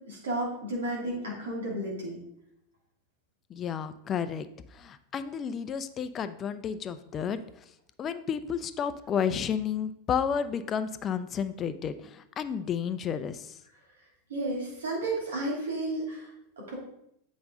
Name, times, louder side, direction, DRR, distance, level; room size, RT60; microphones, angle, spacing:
voice 1, 0.1-2.2 14.3-16.3 16.6-16.7, right 1 dB, 75° right, -4 dB, 2.6 m, -32 dB
voice 2, 3.5-4.5 4.7-7.7 8.0-13.6, left 7 dB, 30° left, 11 dB, 0.5 m, -32 dB
8.0 x 5.2 x 3.7 m, 0.76 s
figure-of-eight pair, 90°, 0 cm